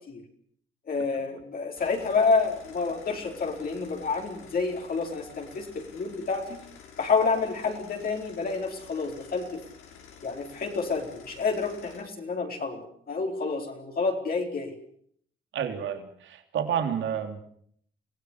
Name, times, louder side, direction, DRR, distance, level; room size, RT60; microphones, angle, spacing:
voice 1, 0.9-5.7 5.9-6.6 7.0-9.6 10.2-14.7, left 4 dB, 50° left, 0 dB, 4.4 m, -29 dB
sound 1, 1.8-12.0, left 7 dB, 85° left, 5.4 m, -50 dB
voice 2, 15.5-17.4, right 8 dB, 75° right, 7 dB, 3.4 m, -30 dB
26.0 x 16.5 x 8.2 m, 0.65 s
cardioid pair, 90°, 20 cm